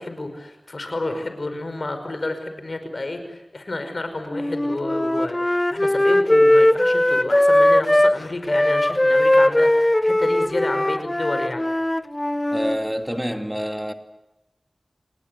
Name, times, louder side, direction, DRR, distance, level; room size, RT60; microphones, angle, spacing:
voice 1, 0.0-11.6, left 2 dB, 60° left, 8 dB, 5.4 m, -30 dB
Wind instrument woodwind instrument, 4.3-8.2 8.5-12.8, left 1 dB, 25° left, 0.8 m, -19 dB
voice 2, 12.5-13.9, equal, 5° right, 6 dB, 2.5 m, -27 dB
29.0 x 20.0 x 8.1 m, 0.96 s
wide cardioid pair, 50°, 0 cm